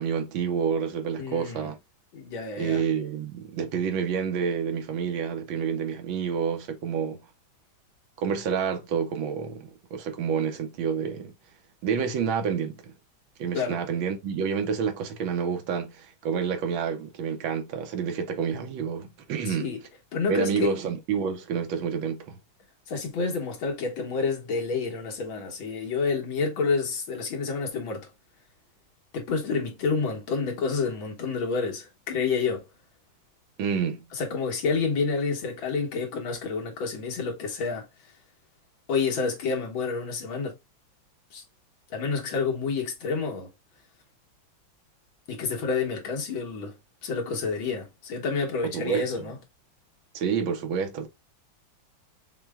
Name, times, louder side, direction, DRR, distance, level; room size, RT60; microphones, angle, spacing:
voice 1, 0.0-1.8 2.6-7.2 8.2-11.3 11.8-12.9 13.4-19.7 20.3-22.3 33.6-34.0 48.6-49.3 50.1-51.1, right 7 dB, 80° right, 1.6 m, -28 dB
voice 2, 1.2-1.7 2.1-2.8 13.5-13.8 19.5-19.8 20.1-20.7 22.9-28.1 29.1-32.6 34.1-37.9 38.9-40.6 41.3-41.4 41.9-43.5 45.3-46.7 47.0-49.4, left 4 dB, 80° left, 2.2 m, -29 dB
5.9 x 2.2 x 3.5 m
omnidirectional pair, 2.2 m